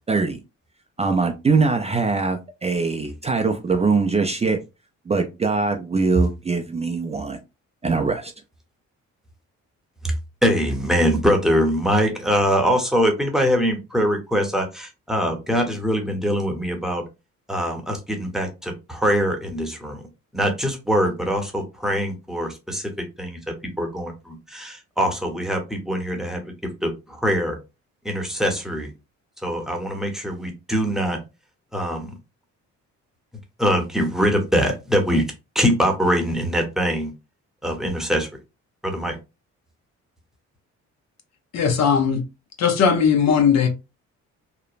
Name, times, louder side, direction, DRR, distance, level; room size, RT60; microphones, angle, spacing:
voice 1, 0.1-0.4 1.0-4.6 5.1-7.4 7.8-8.3, right 4 dB, 20° right, 0.4 m, -22 dB
voice 2, 10.4-17.0 17.5-20.1 20.3-22.9 23.2-23.4 23.8-26.4 26.8-27.6 28.0-28.9 29.4-31.2 31.7-32.1 33.6-35.3 35.5-37.1 37.6-38.3 38.8-39.2, equal, ahead, 0.8 m, -23 dB
voice 3, 41.5-42.2 42.6-43.7, left 6 dB, 60° left, 0.7 m, -18 dB
3.0 x 2.0 x 2.4 m
cardioid pair, 90°, 30 cm